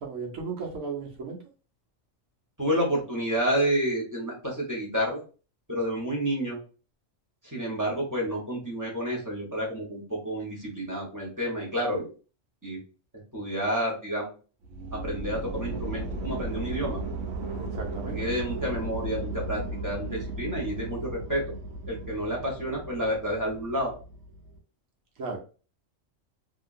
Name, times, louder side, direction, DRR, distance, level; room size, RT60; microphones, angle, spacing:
voice 1, 0.0-1.4 17.5-18.2 25.2-25.4, right 4 dB, 90° right, 0 dB, 1.2 m, -35 dB
voice 2, 2.6-5.2 5.7-6.6 7.4-12.1 12.6-12.8 13.3-14.3 14.9-17.0 18.1-21.4 21.9-23.9, equal, 15° right, -3 dB, 1.2 m, -29 dB
sound 1, 14.6-24.6, right 2 dB, 65° right, 1.0 m, -36 dB
2.8 x 2.8 x 2.6 m, 0.35 s
omnidirectional pair, 1.4 m